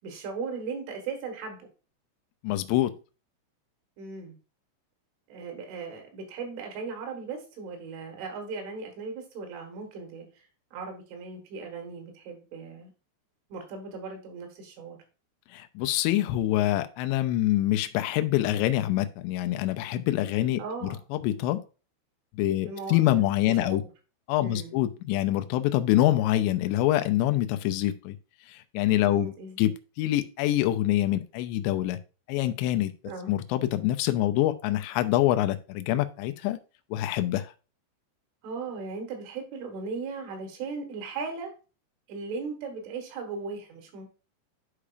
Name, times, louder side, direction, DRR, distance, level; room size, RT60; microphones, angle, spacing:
voice 1, 0.0-1.7 4.0-4.4 5.3-10.3 10.7-12.9 13.5-15.0 20.6-21.0 22.5-23.9 24.4-24.8 29.0-29.6 33.1-33.4 38.4-41.5 42.1-44.1, right 4 dB, 75° right, 3 dB, 3.9 m, -37 dB
voice 2, 2.4-2.9 15.5-20.6 21.1-21.6 22.3-23.8 24.3-28.2 28.5-32.0 32.3-32.9 33.3-36.6 36.9-37.5, left 14 dB, 90° left, 9 dB, 2.5 m, -25 dB
11.0 x 5.0 x 2.4 m, 0.33 s
omnidirectional pair, 5.7 m